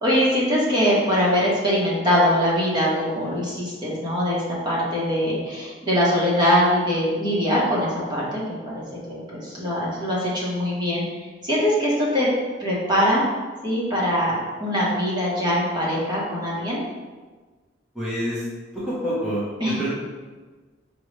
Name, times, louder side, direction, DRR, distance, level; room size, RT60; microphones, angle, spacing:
voice 1, 0.0-11.0 11.4-12.3 12.6-13.2 13.6-16.8 19.6-19.8, equal, 25° right, -6 dB, 1.1 m, -22 dB
voice 2, 17.9-18.5 18.7-19.9, equal, 5° right, -10 dB, 0.8 m, -27 dB
5.2 x 2.4 x 3.1 m, 1.4 s
head